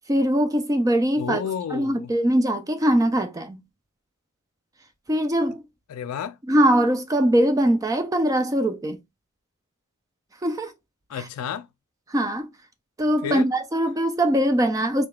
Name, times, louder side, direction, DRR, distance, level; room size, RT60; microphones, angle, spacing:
voice 1, 0.1-1.4 1.7-3.6 5.1-5.6 6.5-9.0 10.4-10.7 12.1-12.5 13.0-15.1, right 1 dB, 15° right, 0.3 m, -21 dB
voice 2, 1.2-2.1 5.9-6.4 11.1-11.7 13.2-13.5, left 8 dB, 85° left, 0.3 m, -31 dB
3.8 x 3.2 x 2.3 m
head